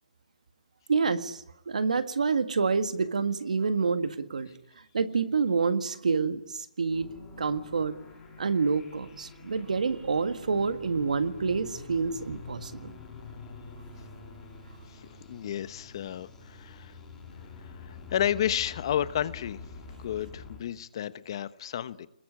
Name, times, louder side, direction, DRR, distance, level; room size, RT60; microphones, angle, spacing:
voice 1, 0.9-4.5 4.9-7.1 7.4-7.9 8.4-13.0, right 5 dB, 90° right, 1.9 m, -28 dB
sound 1, 6.9-20.6, left 4 dB, 10° left, 4.7 m, -46 dB
voice 2, 14.9-17.0 17.6-19.6 20.0-22.1, left 10 dB, 40° left, 1.0 m, -32 dB
26.5 x 21.0 x 9.7 m
hypercardioid pair, 165°, 4 cm